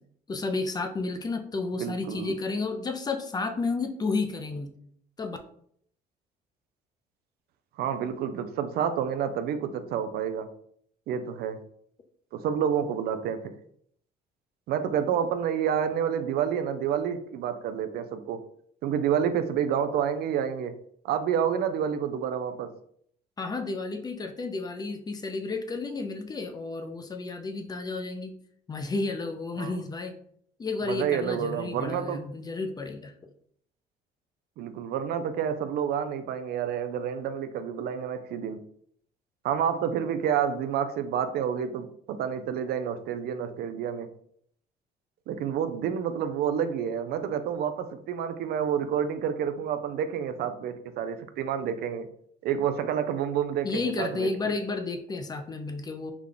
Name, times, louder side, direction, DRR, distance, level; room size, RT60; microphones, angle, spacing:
voice 1, 0.3-4.7 5.2-5.4 23.4-28.3 28.7-30.2 30.6-33.3 53.6-56.1, left 3 dB, 25° left, 6 dB, 0.4 m, -32 dB
voice 2, 1.7-2.3 7.8-10.5 11.1-11.6 12.3-13.5 14.7-18.4 18.8-20.7 21.0-22.7 29.6-29.8 30.9-32.2 34.6-38.6 39.4-44.1 45.3-52.1 52.4-54.3, right 8 dB, 70° right, 9 dB, 0.4 m, -29 dB
3.4 x 2.2 x 3.7 m, 0.66 s
cardioid pair, 110°, 17 cm